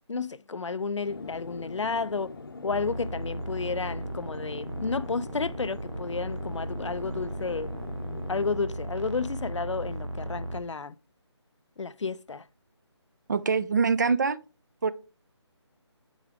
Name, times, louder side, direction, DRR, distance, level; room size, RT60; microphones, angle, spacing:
voice 1, 0.0-2.3 2.6-7.7 8.3-10.9 11.8-12.5, left 4 dB, 85° left, 0.4 m, -32 dB
sound 1, 1.1-8.6, left 4 dB, 50° left, 0.7 m, -43 dB
sound 2, 2.7-10.6, right 1 dB, 85° right, 1.1 m, -36 dB
voice 2, 13.3-14.4 14.8-14.9, right 5 dB, 40° right, 0.4 m, -24 dB
7.2 x 4.9 x 3.4 m
figure-of-eight pair, 155°, 15 cm